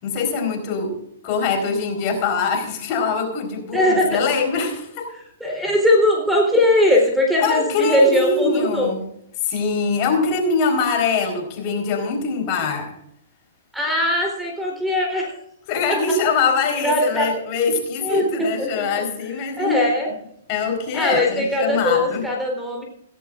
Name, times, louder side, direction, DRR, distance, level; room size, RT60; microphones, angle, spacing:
voice 1, 0.0-1.0 1.2-5.1 7.4-9.0 9.4-12.9 15.7-19.8 20.5-22.3, left 5 dB, 40° left, 3 dB, 4.2 m, -23 dB
voice 2, 3.7-4.2 5.4-8.9 13.7-15.4 16.4-16.5 16.8-17.4 18.0-18.9 19.6-20.1 20.9-22.8, left 1 dB, 5° right, 0 dB, 3.7 m, -20 dB
16.5 x 16.5 x 2.5 m, 0.75 s
hypercardioid pair, 135°, 0 cm